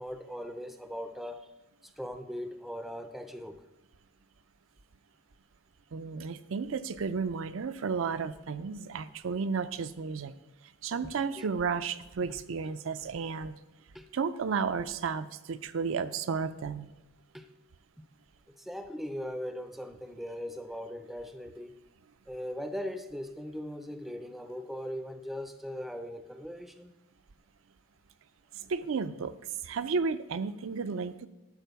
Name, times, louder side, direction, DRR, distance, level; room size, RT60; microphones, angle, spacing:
voice 1, 0.0-1.5 2.0-3.6 11.4-11.5 12.3-12.4 13.9-14.1 17.3-17.5 18.6-21.7 22.3-26.9, equal, ahead, 7 dB, 0.5 m, -39 dB
voice 2, 5.9-10.3 10.8-13.6 14.1-16.9 28.5-29.3 29.6-31.3, right 5 dB, 70° right, 12 dB, 0.5 m, -33 dB
12.0 x 4.2 x 6.8 m, 0.95 s
head